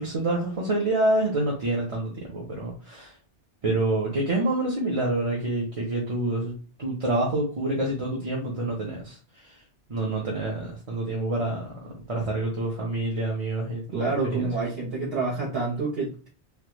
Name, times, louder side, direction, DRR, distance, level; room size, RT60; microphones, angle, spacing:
voice 1, 0.0-3.1 3.6-9.2 9.4-9.5 9.9-11.8 12.1-14.5, right 2 dB, 35° right, -3 dB, 0.7 m, -27 dB
voice 2, 13.9-16.3, right 3 dB, 65° right, -5 dB, 1.1 m, -28 dB
3.2 x 2.3 x 3.0 m, 0.37 s
omnidirectional pair, 1.1 m